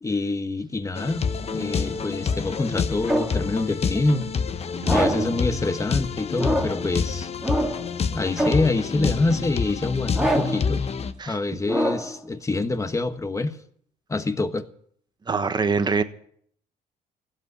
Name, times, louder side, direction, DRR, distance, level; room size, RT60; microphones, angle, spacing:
voice 1, 0.0-4.2 4.9-7.3 8.1-10.9 11.3-13.6 14.1-14.7, left 2 dB, 20° left, 1.3 m, -26 dB
sound 1, 1.0-11.1, left 6 dB, 35° left, 1.1 m, -28 dB
sound 2, 1.4-3.5 4.8-5.4 6.3-6.9 7.4-7.9 8.4-8.8 10.1-10.7 11.6-12.2, right 1 dB, 5° right, 2.3 m, -27 dB
voice 2, 4.8-5.4 11.2-11.4 15.3-16.0, right 4 dB, 25° right, 1.3 m, -25 dB
16.0 x 8.2 x 9.6 m
cardioid pair, 110°, 17 cm